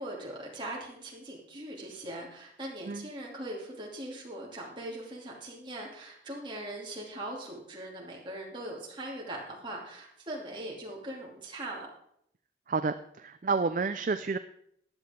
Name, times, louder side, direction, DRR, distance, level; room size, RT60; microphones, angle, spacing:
voice 1, 0.0-11.9, right 1 dB, 25° right, -2 dB, 2.8 m, -40 dB
voice 2, 12.7-14.4, right 4 dB, 45° right, 10 dB, 0.4 m, -30 dB
15.0 x 10.5 x 3.7 m, 0.70 s
head